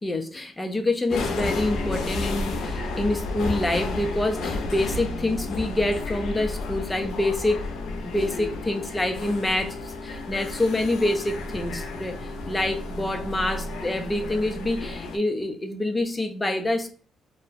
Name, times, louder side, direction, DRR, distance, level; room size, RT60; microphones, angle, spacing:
voice 1, 0.0-7.7 8.0-16.9, left 1 dB, 15° left, 0.4 m, -26 dB
sound 1, 1.1-15.2, left 2 dB, 80° left, 0.4 m, -32 dB
2.4 x 2.1 x 2.4 m
cardioid pair, 90°, 0 cm